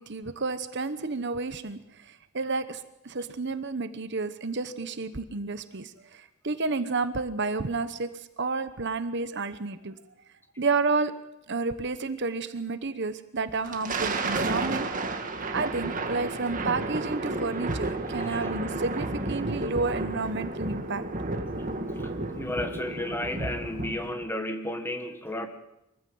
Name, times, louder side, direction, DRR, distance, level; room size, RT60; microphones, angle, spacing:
voice 1, 0.0-8.1 8.4-10.0 10.6-11.1 11.5-14.9 15.2-15.3 15.5-21.1, right 3 dB, 55° right, 12 dB, 1.0 m, -31 dB
Thunder, 13.5-24.2, right 2 dB, 40° right, 1.7 m, -32 dB
voice 2, 18.1-18.5 22.0-22.1 22.4-25.5, left 1 dB, 10° left, 7 dB, 1.6 m, -33 dB
23.5 x 15.0 x 7.8 m, 0.88 s
head